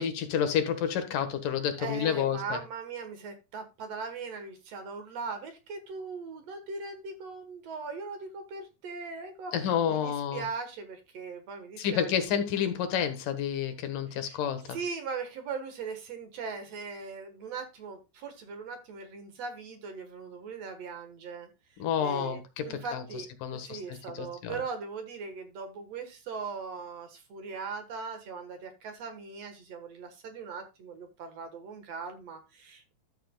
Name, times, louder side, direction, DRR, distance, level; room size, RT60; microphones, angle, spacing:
voice 1, 0.0-2.6 9.5-10.4 11.8-14.8 21.8-23.0 23.4-24.6, left 8 dB, 85° left, 3.0 m, -30 dB
voice 2, 1.8-12.1 14.1-14.4 14.7-21.5 22.0-32.9, right 5 dB, 60° right, 2.4 m, -39 dB
12.5 x 6.7 x 2.3 m
omnidirectional pair, 3.7 m